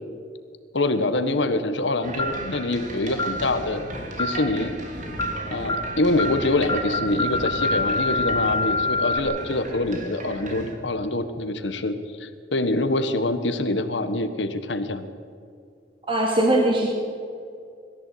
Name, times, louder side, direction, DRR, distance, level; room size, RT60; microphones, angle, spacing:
voice 1, 0.7-3.9 4.2-4.7 5.5-15.1, left 2 dB, 85° left, 10 dB, 1.5 m, -25 dB
sound 1, 2.0-10.8, right 1 dB, 45° right, 3.1 m, -36 dB
sound 2, 2.2-2.5 3.2-3.4 4.2-4.5 5.2-5.4 5.7-5.9 6.2-6.4 6.7-9.2, left 2 dB, 25° left, 1.6 m, -25 dB
voice 2, 16.1-16.9, right 1 dB, 30° right, -1 dB, 2.6 m, -20 dB
22.0 x 14.5 x 8.6 m, 2.4 s
head